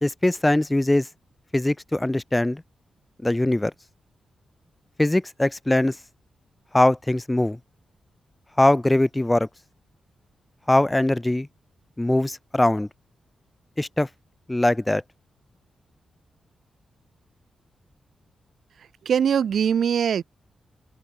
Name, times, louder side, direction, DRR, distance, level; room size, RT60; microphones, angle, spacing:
voice 1, 0.0-1.1 1.5-2.6 3.2-3.7 5.0-6.0 6.7-7.6 8.6-9.5 10.7-11.5 12.0-12.9 13.8-14.1 14.5-15.0, left 1 dB, 10° left, 0.6 m, -21 dB
voice 2, 18.8-20.2, right 8 dB, 65° right, 0.9 m, -22 dB
wide cardioid pair, 135°, 0 cm